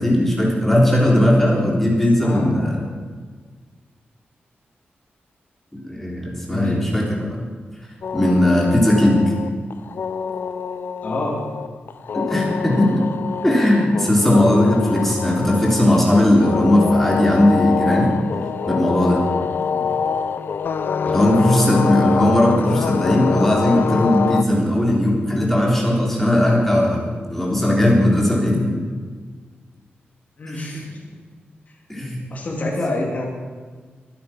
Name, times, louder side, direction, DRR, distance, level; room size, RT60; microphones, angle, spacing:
voice 1, 0.0-2.8 5.7-7.4 8.1-9.2 12.1-13.0 13.4-18.1 18.7-19.2 21.1-28.6 30.6-30.7 31.9-32.2, left 1 dB, 5° left, -3 dB, 3.5 m, -17 dB
voice 2, 2.2-2.8 6.5-6.9 11.0-11.4 19.7-19.9 21.0-21.3 28.5-28.9 30.4-31.0 32.3-33.3, left 1 dB, 40° left, -2 dB, 3.0 m, -27 dB
sound 1, 8.0-24.4, left 6 dB, 65° left, 0.7 m, -25 dB
22.5 x 8.7 x 5.9 m, 1.5 s
wide cardioid pair, 175°, 4 cm